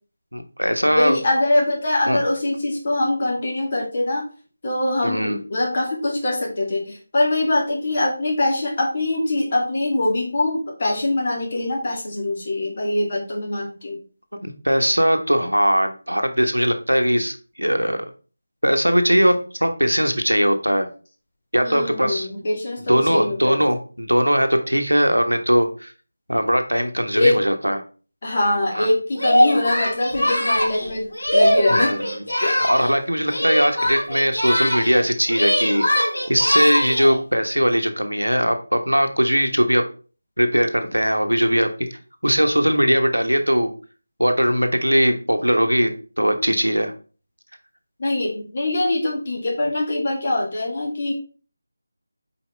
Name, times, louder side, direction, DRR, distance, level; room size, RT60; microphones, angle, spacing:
voice 1, 0.3-1.2 2.1-2.2 5.0-5.4 14.4-18.0 18.6-20.9 21.5-22.3 22.9-25.9 26.3-27.8 28.7-28.9 31.7-32.3 32.7-39.8 40.4-41.7 42.2-43.7 44.2-46.9, equal, 90° right, 6 dB, 1.2 m, -20 dB
voice 2, 0.9-4.2 4.6-14.0 21.6-23.6 27.1-27.4 28.2-31.9 32.4-32.6 33.4-33.5 48.0-51.2, left 1 dB, 40° left, -1 dB, 2.4 m, -23 dB
Singing, 29.2-33.0 33.3-35.0 35.3-37.2, equal, 70° left, 3.7 m, -21 dB
7.2 x 4.7 x 3.4 m, 0.37 s
figure-of-eight pair, 160°, 0 cm